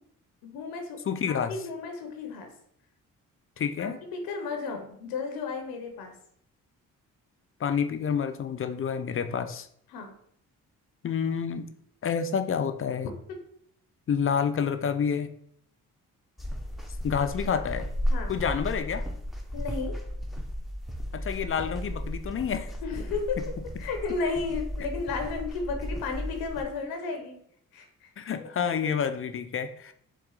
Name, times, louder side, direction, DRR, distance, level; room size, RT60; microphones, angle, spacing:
voice 1, 0.4-2.5 3.8-6.2 9.9-10.2 13.3-13.5 18.1-18.4 19.5-20.1 22.8-27.4 27.7-28.1 28.4-28.9, left 4 dB, 85° left, 5 dB, 0.7 m, -34 dB
voice 2, 1.1-1.5 3.6-4.0 7.6-9.7 11.0-11.7 12.0-13.1 14.1-15.3 17.0-17.9 18.3-19.1 21.1-22.7 23.4-23.5 28.2-29.9, left 7 dB, 40° left, 9 dB, 0.4 m, -28 dB
sound 1, 16.4-26.6, equal, ahead, 0.7 m, -34 dB
4.2 x 2.4 x 3.8 m, 0.66 s
supercardioid pair, 50°, 36 cm